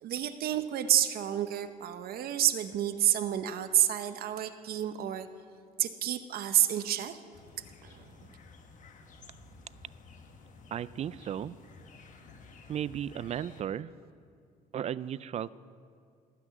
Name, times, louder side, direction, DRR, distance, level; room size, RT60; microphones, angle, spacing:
voice 1, 0.0-5.3 5.8-7.2 7.8-8.0, right 11 dB, 65° right, 10 dB, 0.8 m, -29 dB
sound 1, 7.3-13.6, left 4 dB, 50° left, 1.4 m, -53 dB
voice 2, 10.7-11.6 12.7-13.9 14.7-15.5, right 10 dB, 40° right, 18 dB, 0.4 m, -35 dB
18.0 x 6.1 x 9.4 m, 2.4 s
cardioid pair, 110°, 17 cm